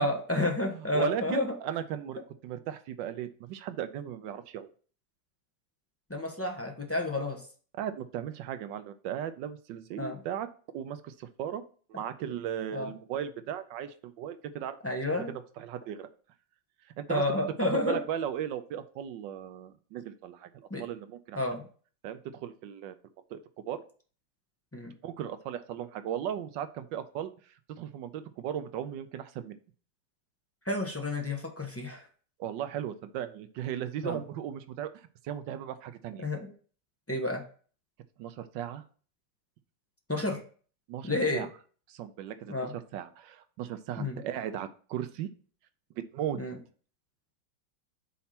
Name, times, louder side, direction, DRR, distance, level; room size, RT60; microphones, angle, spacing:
voice 1, 0.0-1.5 6.1-7.4 10.0-10.2 12.7-12.9 14.8-15.4 17.1-18.0 20.7-20.9 21.3-21.6 24.7-24.9 30.7-32.1 34.0-34.2 36.2-36.4 37.1-37.4 40.1-40.4 41.0-41.5 42.5-42.7 44.0-44.2 46.4-46.6, left 1 dB, 10° left, 2 dB, 0.6 m, -30 dB
voice 2, 0.7-4.7 7.8-10.5 10.7-11.6 11.9-14.8 15.6-16.1 17.0-17.2 17.6-21.4 22.0-23.0 23.3-23.4 23.7-23.8 25.0-27.3 27.7-29.6 32.4-34.9 35.2-36.3 38.2-38.8 40.9-41.5 41.9-42.5 42.9-45.3 46.0-46.4, right 10 dB, 80° right, 11 dB, 1.3 m, -36 dB
5.7 x 4.2 x 5.8 m, 0.42 s
omnidirectional pair, 2.0 m